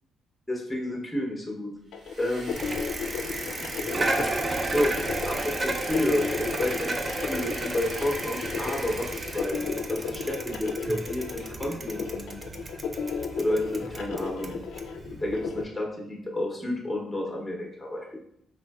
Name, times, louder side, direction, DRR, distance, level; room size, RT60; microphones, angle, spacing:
voice 1, 0.5-1.7 2.2-2.5 3.6-3.7 3.9-4.9 5.2-12.4 13.4-14.6 15.2-18.2, left 1 dB, 5° left, -1 dB, 0.7 m, -30 dB
sound 1, 1.9-15.6, left 6 dB, 80° left, 0.3 m, -34 dB
sound 2, 1.9-9.7, equal, 60° right, 1.2 m, -40 dB
Bicycle, 2.5-15.6, right 2 dB, 30° right, 0.3 m, -33 dB
3.2 x 2.5 x 2.3 m, 0.71 s
cardioid pair, 90°, 0 cm